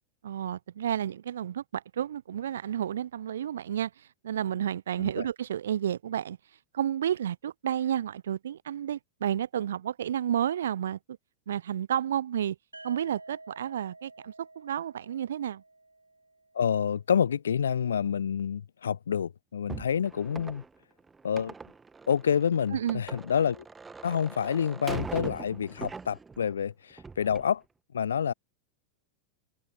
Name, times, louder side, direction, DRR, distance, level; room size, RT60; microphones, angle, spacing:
voice 1, 0.2-3.9 4.2-6.4 6.7-11.2 11.5-12.6 12.8-15.6 22.7-23.0, right 10 dB, 65° right, 0.7 m, -31 dB
sound 1, 12.7-16.6, right 2 dB, 85° right, 4.3 m, -51 dB
voice 2, 16.5-20.6 21.2-21.5 22.1-23.6 24.0-27.6 27.9-28.3, left 8 dB, 70° left, 0.5 m, -28 dB
sound 2, 19.7-26.5 26.9-27.5, right 4 dB, 15° right, 2.0 m, -42 dB
figure-of-eight pair, 90°, 0 cm